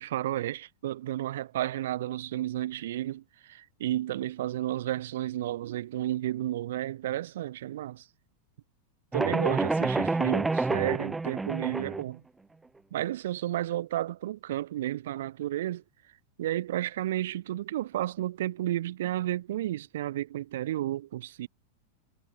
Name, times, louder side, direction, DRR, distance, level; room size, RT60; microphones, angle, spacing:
voice 1, 0.0-8.1 9.1-12.2 12.9-15.8 16.4-21.5, right 13 dB, 55° right, 7.5 m, -32 dB
sound 1, 9.1-12.0, right 3 dB, 10° right, 3.2 m, -28 dB
figure-of-eight pair, 90°, 0 cm